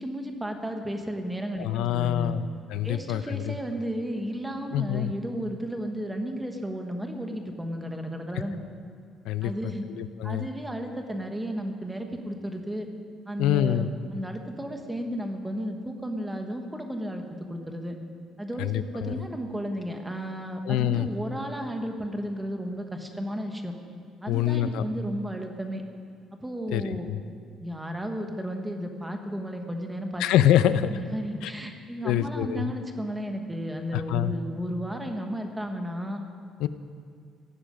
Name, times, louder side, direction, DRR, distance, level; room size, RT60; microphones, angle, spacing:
voice 1, 0.0-2.4 2.8-8.6 9.4-9.9 10.2-12.9 13.3-17.2 17.5-18.0 18.4-23.7 24.2-25.8 26.4-27.1 27.6-30.2 30.7-36.2, equal, 5° right, 4 dB, 1.3 m, -33 dB
voice 2, 1.6-3.5 4.7-5.1 9.2-9.5 9.9-10.5 13.4-13.9 18.6-19.2 20.7-21.1 24.3-24.8 26.7-27.2 30.2-30.9 31.4-31.5 32.0-32.7 33.9-34.3 36.6-36.7, left 11 dB, 90° left, 13 dB, 0.7 m, -25 dB
17.5 x 15.0 x 5.2 m, 2.3 s
cardioid pair, 175°, 0 cm